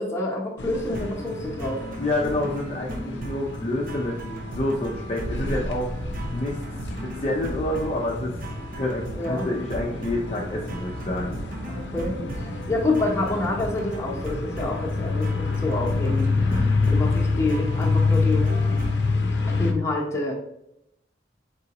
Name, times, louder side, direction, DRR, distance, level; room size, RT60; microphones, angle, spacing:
voice 1, 0.0-1.8 9.1-9.5 11.7-18.5 19.4-20.3, left 2 dB, 15° left, -2 dB, 0.9 m, -28 dB
sound 1, 0.6-19.7, left 3 dB, 90° left, 0.6 m, -27 dB
sound 2, 0.9-19.1, right 1 dB, 50° right, 0.6 m, -37 dB
voice 2, 2.0-4.2 4.5-5.9 6.3-8.4 8.8-11.3 16.4-16.7, left 1 dB, 35° left, -3 dB, 0.5 m, -28 dB
4.0 x 3.7 x 2.9 m, 0.81 s
head